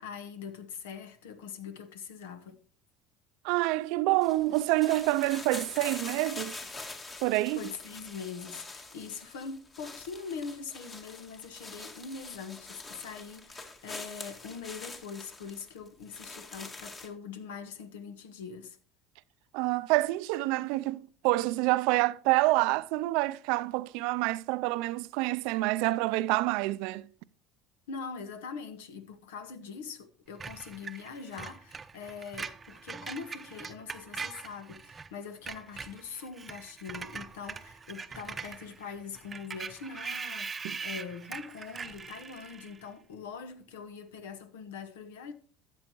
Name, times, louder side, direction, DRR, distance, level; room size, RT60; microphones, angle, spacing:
voice 1, 0.0-2.6 7.5-18.8 27.9-45.3, left 6 dB, 80° left, 1.1 m, -43 dB
voice 2, 3.4-6.5 7.2-7.6 19.5-27.1 40.6-40.8, right 19 dB, 70° right, 0.4 m, -27 dB
sound 1, 4.2-17.1, left 3 dB, 30° left, 1.9 m, -45 dB
Screech, 30.4-35.1 35.4-42.8, right 5 dB, 25° right, 0.7 m, -42 dB
13.0 x 7.7 x 3.0 m
hypercardioid pair, 75°, 0 cm